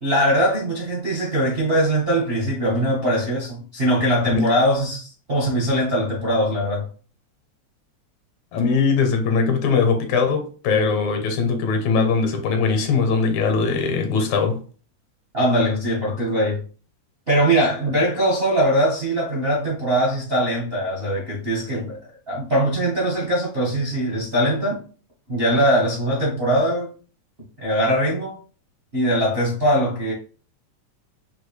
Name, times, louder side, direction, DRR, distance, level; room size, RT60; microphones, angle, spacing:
voice 1, 0.0-6.8 15.3-16.6 17.3-22.0 22.3-24.8 25.3-26.9 27.6-28.4 28.9-30.1, equal, 75° right, 0.5 m, -21 dB
voice 2, 8.5-14.6, left 5 dB, 75° left, 2.1 m, -21 dB
6.1 x 2.7 x 3.2 m
omnidirectional pair, 3.4 m